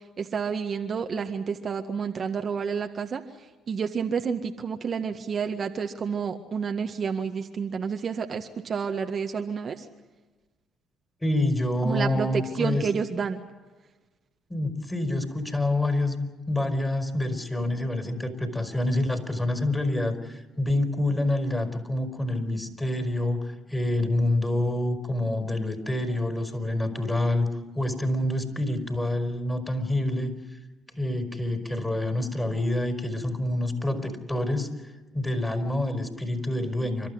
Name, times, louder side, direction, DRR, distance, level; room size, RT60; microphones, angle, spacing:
voice 1, 0.2-3.2 3.7-9.8 11.8-13.4, right 6 dB, 50° right, 4 dB, 1.7 m, -29 dB
voice 2, 11.2-12.9 14.5-27.5 27.7-30.3 30.9-34.7 35.1-37.1, left 1 dB, 10° left, 6 dB, 4.7 m, -27 dB
29.5 x 13.0 x 9.6 m, 1.2 s
supercardioid pair, 60°, 0 cm